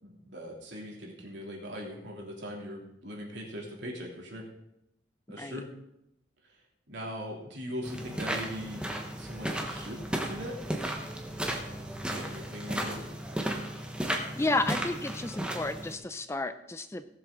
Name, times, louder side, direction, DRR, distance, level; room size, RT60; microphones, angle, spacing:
voice 1, 0.0-4.4 5.3-5.7 6.9-8.8 9.2-10.6 12.1-13.1, equal, 70° right, -2 dB, 3.0 m, -40 dB
sound 1, 7.8-15.9, right 1 dB, 5° right, 1.2 m, -35 dB
voice 2, 14.4-17.0, left 2 dB, 15° left, 11 dB, 0.4 m, -32 dB
17.5 x 7.5 x 3.9 m, 0.82 s
head